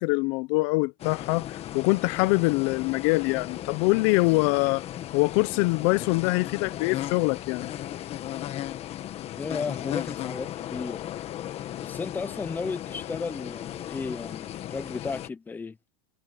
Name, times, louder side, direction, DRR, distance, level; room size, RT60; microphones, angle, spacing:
voice 1, 0.0-4.9 5.1-7.7, left 24 dB, 55° left, 0.7 m, -24 dB
sound 1, 1.0-15.3, left 12 dB, 30° left, 1.4 m, -36 dB
voice 2, 9.4-11.0 11.8-15.8, left 4 dB, 10° left, 0.8 m, -34 dB
supercardioid pair, 150°, 20 cm